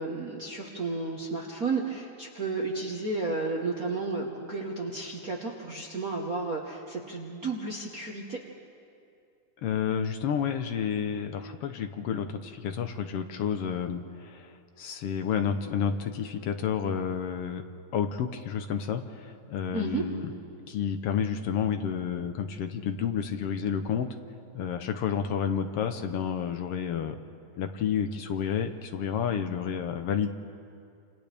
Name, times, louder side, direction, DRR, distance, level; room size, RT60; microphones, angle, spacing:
voice 1, 0.0-8.4 19.7-20.0, right 3 dB, 55° right, -1 dB, 1.0 m, -32 dB
voice 2, 9.6-17.6 17.9-20.3 20.7-24.1 24.5-27.2 27.6-30.3, left 7 dB, 70° left, 7 dB, 1.5 m, -30 dB
29.0 x 27.5 x 3.5 m, 2.4 s
omnidirectional pair, 3.5 m